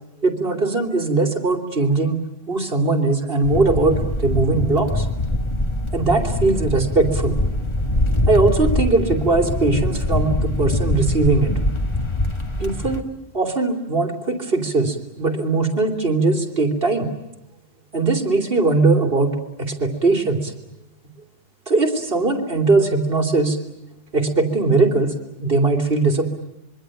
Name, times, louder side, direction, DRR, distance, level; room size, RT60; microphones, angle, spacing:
voice 1, 0.2-5.1 5.9-7.4 8.3-11.5 12.6-13.0 13.3-17.1 17.9-19.3 19.6-20.5 21.7-23.6 24.1-25.1 25.4-26.3, right 3 dB, 65° right, 3 dB, 3.2 m, -20 dB
sound 1, 3.4-13.0, left 1 dB, 30° left, 1.7 m, -23 dB
25.5 x 23.0 x 9.0 m, 0.87 s
omnidirectional pair, 1.0 m